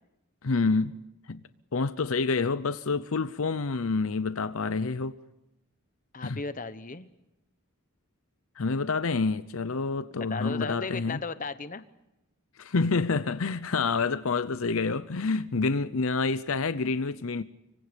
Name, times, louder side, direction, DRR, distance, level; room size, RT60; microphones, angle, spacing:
voice 1, 0.4-1.0 1.3-1.4 1.7-5.2 6.2-6.4 8.6-11.2 12.6-17.4, left 4 dB, 65° left, 0.7 m, -28 dB
voice 2, 6.1-7.1 10.2-11.8, left 4 dB, 35° left, 1.0 m, -35 dB
26.0 x 24.0 x 5.2 m
head